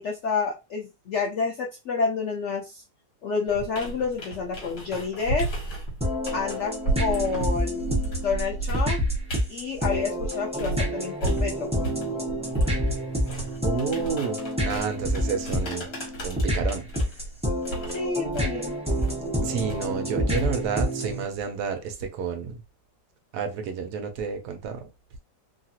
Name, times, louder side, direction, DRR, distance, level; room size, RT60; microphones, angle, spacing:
voice 1, 0.0-2.8 3.2-5.5 6.3-7.9 8.2-9.0 9.5-11.7 17.9-18.7, left 5 dB, 85° left, 0.6 m, -29 dB
sound 1, 3.5-10.9 11.2-20.8, right 2 dB, 60° left, 1.5 m, -33 dB
sound 2, 6.0-21.2, equal, 10° right, 0.4 m, -28 dB
voice 2, 13.6-15.9 16.2-16.9 19.4-22.6 23.3-24.9, right 6 dB, 75° right, 1.1 m, -30 dB
3.0 x 2.4 x 2.8 m
omnidirectional pair, 1.9 m